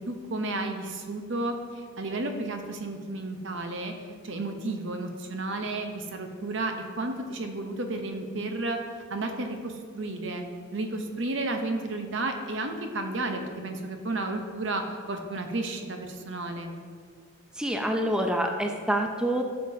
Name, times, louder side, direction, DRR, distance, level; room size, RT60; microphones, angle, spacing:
voice 1, 0.1-3.9 4.2-8.8 9.1-10.4 10.7-16.7, right 2 dB, 60° right, 5 dB, 0.8 m, -32 dB
voice 2, 17.6-19.4, right 1 dB, 5° right, 3 dB, 0.4 m, -26 dB
10.5 x 6.7 x 2.7 m, 2.1 s
head